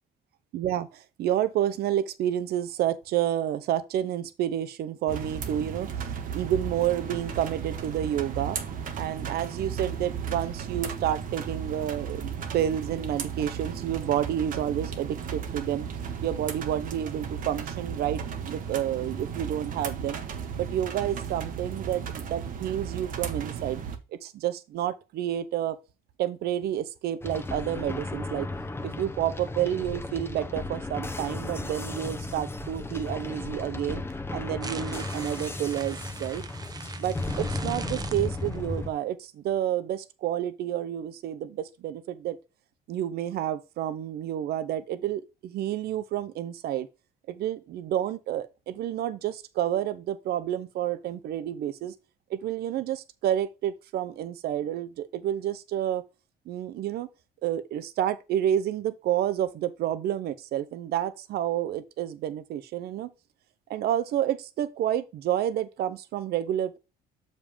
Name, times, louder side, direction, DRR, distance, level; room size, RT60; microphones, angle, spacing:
voice 1, 0.5-5.9 6.3-8.6 9.0-15.9 16.2-20.2 20.6-23.8 24.1-25.8 26.2-28.5 28.8-34.0 34.3-36.4 37.0-42.4 42.9-46.9 47.3-51.9 52.3-56.0 56.5-57.1 57.4-63.1 63.7-66.8, right 11 dB, 70° right, 0.8 m, -29 dB
sound 1, 5.1-24.0, right 7 dB, 55° right, 1.1 m, -35 dB
sound 2, 27.2-38.9, left 2 dB, 15° left, 1.0 m, -35 dB
sound 3, 34.6-38.8, right 4 dB, 25° right, 0.6 m, -42 dB
6.9 x 5.2 x 3.5 m
cardioid pair, 110°, 17 cm